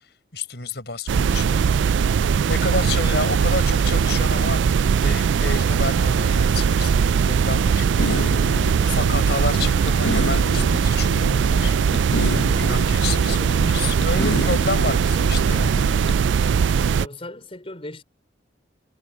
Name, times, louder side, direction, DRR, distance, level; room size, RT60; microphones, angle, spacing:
voice 1, 0.3-1.6 2.5-4.6 5.0-7.9 8.8-11.8 12.6-15.7, left 3 dB, 65° left, 6.9 m, -29 dB
sound 1, 1.1-17.1, right 6 dB, 85° right, 0.4 m, -20 dB
sound 2, 8.0-16.1, left 1 dB, 90° left, 6.8 m, -30 dB
voice 2, 16.9-18.0, left 1 dB, 30° left, 4.8 m, -38 dB
head